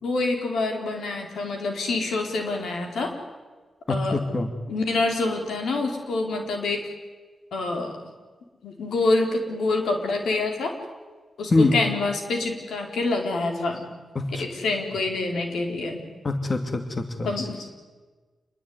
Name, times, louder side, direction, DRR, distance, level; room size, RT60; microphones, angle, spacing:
voice 1, 0.0-3.1 3.9-4.2 4.7-6.8 7.5-8.0 8.6-10.7 11.4-13.8 14.4-16.0 17.2-17.9, left 3 dB, 85° left, 3 dB, 4.6 m, -26 dB
voice 2, 3.9-4.5 11.5-11.7 14.1-14.4 16.2-17.3, left 2 dB, 45° left, 7 dB, 2.6 m, -24 dB
27.5 x 21.5 x 9.8 m, 1.4 s
cardioid pair, 55°, 0 cm